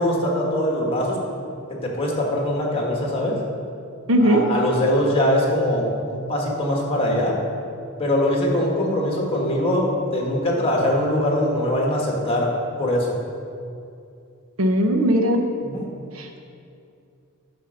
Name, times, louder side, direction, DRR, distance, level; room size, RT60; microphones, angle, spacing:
voice 1, 0.0-1.3 1.8-3.4 4.2-7.3 8.0-12.5 12.8-13.1 15.6-15.8, left 1 dB, 25° left, -1 dB, 1.6 m, -22 dB
voice 2, 4.1-4.4 14.6-15.4 16.2-16.4, equal, 80° right, 4 dB, 0.9 m, -18 dB
9.3 x 5.4 x 6.4 m, 2.5 s
head